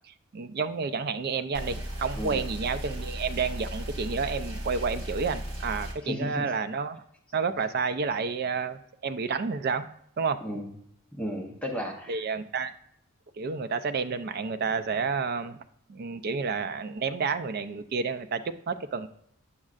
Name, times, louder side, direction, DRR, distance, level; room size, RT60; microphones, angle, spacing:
voice 1, 0.3-7.0 7.3-9.9 10.2-10.4 12.1-12.7 13.4-15.6 15.9-19.1, right 5 dB, 45° right, 10 dB, 0.3 m, -30 dB
sound 1, 1.5-5.9, equal, 70° right, 1.7 m, -36 dB
voice 2, 2.2-2.5 6.0-6.5 10.4-10.7 11.1-12.3, equal, 5° left, 0 dB, 0.7 m, -34 dB
8.5 x 6.2 x 2.4 m, 0.72 s
head